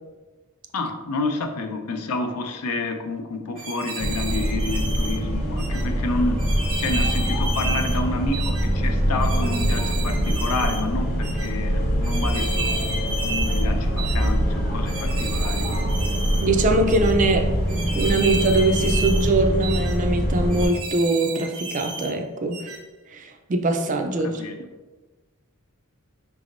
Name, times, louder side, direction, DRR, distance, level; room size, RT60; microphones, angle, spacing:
voice 1, 0.7-6.4 6.8-12.8 13.2-15.8 24.4-24.6, left 3 dB, 80° left, 5 dB, 0.5 m, -29 dB
sound 1, 3.6-5.2 5.6-5.8 6.4-8.0 8.3-8.7 9.2-10.8 11.2-11.5 12.0-13.6 14.0-14.3 14.9-16.5 16.9-17.1 17.7-19.3 19.6-20.0 20.5-22.1 22.5-22.8, right 3 dB, 80° right, 0.8 m, -32 dB
sound 2, 4.0-20.7, equal, 40° left, 0.8 m, -24 dB
voice 2, 16.4-17.5 18.0-22.8 23.1-24.4, right 2 dB, 35° right, 5 dB, 0.4 m, -22 dB
5.0 x 3.4 x 2.5 m, 1.3 s
head